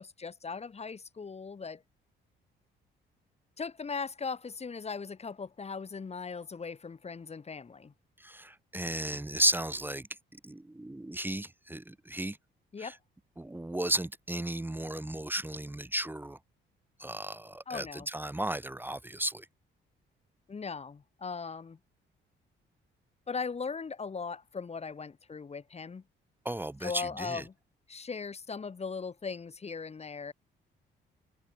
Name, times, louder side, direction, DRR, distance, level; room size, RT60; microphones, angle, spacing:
voice 1, 0.0-1.8 3.6-7.9 12.7-13.0 17.7-18.1 20.5-21.8 23.3-26.0 26.8-27.5 27.9-30.3, left 5 dB, 30° left, 1.9 m, -39 dB
voice 2, 8.2-10.1 10.4-12.4 12.8-12.9 13.4-16.4 17.0-19.5 26.4-27.4, right 1 dB, 10° right, 1.5 m, -34 dB
cardioid pair, 90°, 20 cm